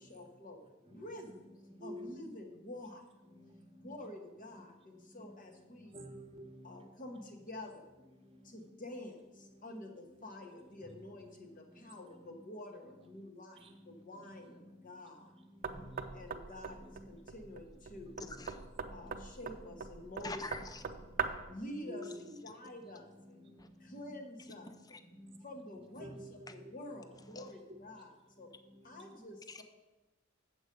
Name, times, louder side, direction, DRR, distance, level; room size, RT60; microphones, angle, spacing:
voice 1, 0.0-1.4 1.8-3.0 3.8-6.0 6.6-7.9 8.4-15.3 16.1-18.2 18.9-20.4 20.8-20.9 21.5-22.1 22.4-23.5 23.8-24.7 25.4-28.5 28.8-29.6, left 1 dB, 40° left, 3 dB, 1.2 m, -48 dB
voice 2, 1.8-2.3 3.8-3.9 5.9-6.7 13.6-13.7 15.7-16.1 16.9-17.0 18.0-18.1 19.0-19.1 21.7-22.4 23.8-24.5 26.0-26.7, equal, 25° right, 4 dB, 1.1 m, -48 dB
Knock, 15.6-21.6, right 6 dB, 45° right, 0.5 m, -41 dB
voice 3, 18.3-18.7 20.2-20.8 23.6-23.7 24.9-25.0 27.4-27.5 29.5-29.6, left 3 dB, 20° left, 9 dB, 0.5 m, -44 dB
7.9 x 7.2 x 5.2 m, 1.1 s
head